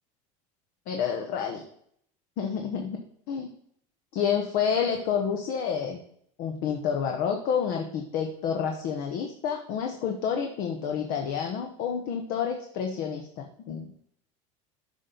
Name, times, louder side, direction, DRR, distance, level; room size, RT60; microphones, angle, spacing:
voice 1, 0.9-1.6 2.4-3.5 4.1-6.0 6.4-13.9, left 7 dB, 60° left, 4 dB, 1.0 m, -29 dB
8.7 x 5.4 x 3.9 m, 0.67 s
supercardioid pair, 110°, 17 cm